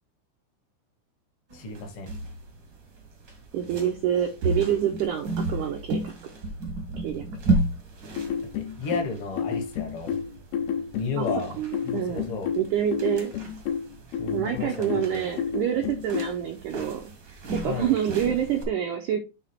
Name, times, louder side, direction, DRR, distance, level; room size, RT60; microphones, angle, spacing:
voice 1, 1.5-2.1 8.6-10.2 10.9-11.6 11.8-12.5 14.2-15.2 17.6-17.9, left 3 dB, 65° left, 4 dB, 1.3 m, -33 dB
sound 1, 1.5-18.6, right 2 dB, 70° right, 1.0 m, -34 dB
voice 2, 3.5-6.1 7.0-7.2 11.1-11.3 11.6-13.3 14.3-17.1 17.5-19.2, right 10 dB, 90° right, 4 dB, 1.7 m, -27 dB
sound 2, 8.1-16.4, left 8 dB, 85° left, 2.6 m, -30 dB
7.2 x 3.5 x 4.3 m, 0.28 s
omnidirectional pair, 4.5 m